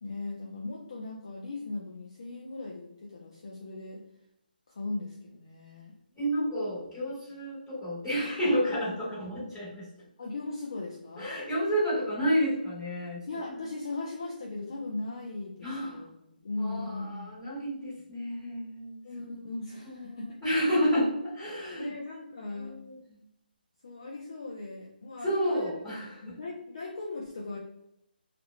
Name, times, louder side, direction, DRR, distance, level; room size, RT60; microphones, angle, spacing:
voice 1, 0.0-4.0 4.7-5.9 10.2-11.3 13.3-17.4 19.0-20.4 21.8-22.8 23.8-25.7 26.0-27.6, left 2 dB, 30° left, -2 dB, 0.3 m, -38 dB
voice 2, 6.1-9.9 11.2-13.2 15.6-16.1 16.6-19.0 19.8-21.9 22.5-23.2 25.2-26.3, equal, 5° left, -15 dB, 0.9 m, -30 dB
2.4 x 2.0 x 2.9 m, 0.79 s
hypercardioid pair, 175°, 5 cm